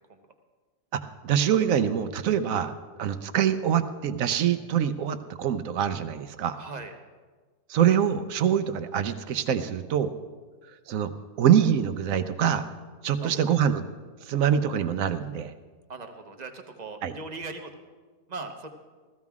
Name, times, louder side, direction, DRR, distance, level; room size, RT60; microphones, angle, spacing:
voice 1, 0.9-2.7 3.0-6.6 7.7-10.1 10.9-11.1 11.4-12.7 13.0-13.9 14.2-15.5 17.0-17.2, right 9 dB, 65° right, 11 dB, 0.8 m, -24 dB
voice 2, 6.6-6.9 13.2-13.4 15.9-17.7 18.3-18.7, right 3 dB, 35° right, 5 dB, 0.7 m, -39 dB
15.5 x 14.5 x 3.6 m, 1.4 s
omnidirectional pair, 2.0 m